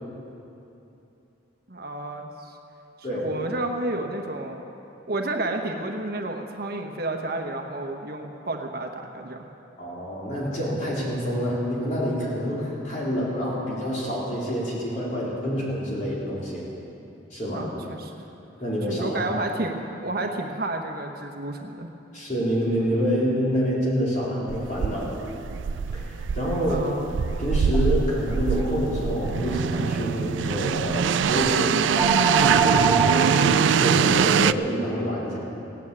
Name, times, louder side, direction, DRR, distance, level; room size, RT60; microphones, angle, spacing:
voice 1, 1.7-2.6 3.1-4.6 5.1-9.4 17.5-18.1 18.9-21.9 26.7-27.1, right 2 dB, 50° right, 3 dB, 1.1 m, -31 dB
voice 2, 9.8-16.6 17.3-17.7 18.6-19.3 22.1-25.1 25.9-26.8 27.4-31.7 32.4-35.4, equal, 40° left, -6 dB, 4.3 m, -27 dB
sound 1, 24.5-34.5, right 7 dB, 70° right, 0.4 m, -23 dB
sound 2, 27.7-33.1, right 4 dB, ahead, 1.9 m, -29 dB
17.0 x 9.1 x 8.6 m, 2.8 s
head